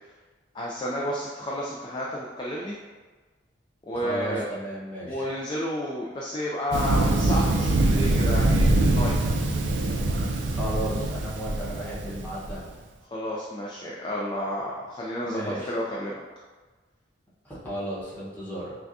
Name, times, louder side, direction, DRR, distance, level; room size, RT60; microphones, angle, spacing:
voice 1, 0.5-2.8 3.9-4.5 5.0-9.4 13.1-16.1, equal, 25° left, -4 dB, 0.4 m, -31 dB
voice 2, 3.9-5.3 10.5-12.6 15.2-15.7 17.4-18.8, right 1 dB, 10° left, -8 dB, 1.1 m, -34 dB
Thunder, 6.7-12.6, right 2 dB, 80° right, 0.5 m, -23 dB
5.9 x 2.3 x 2.6 m, 1.3 s
head